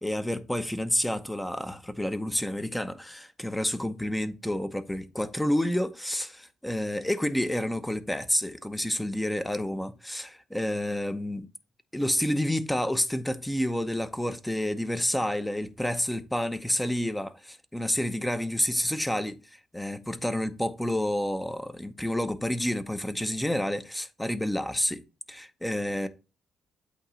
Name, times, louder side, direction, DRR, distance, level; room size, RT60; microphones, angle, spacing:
voice 1, 0.0-11.5 11.9-25.0 25.3-26.1, left 1 dB, 5° left, 0.7 m, -29 dB
8.4 x 2.9 x 6.2 m
cardioid pair, 90°, 0 cm